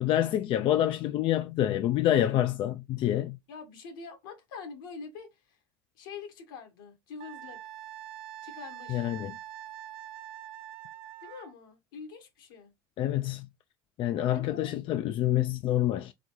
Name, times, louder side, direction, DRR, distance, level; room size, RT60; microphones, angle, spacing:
voice 1, 0.0-3.4 8.9-9.3 13.0-13.5 14.0-16.1, left 12 dB, 55° left, 0.4 m, -27 dB
voice 2, 3.5-5.6 5.9-7.6 8.4-9.0 11.2-12.7 14.3-14.7, left 5 dB, 80° left, 1.5 m, -45 dB
Wind instrument woodwind instrument, 7.2-11.5, right 12 dB, 60° right, 0.6 m, -44 dB
4.0 x 3.5 x 3.1 m
hypercardioid pair, 80°, 11 cm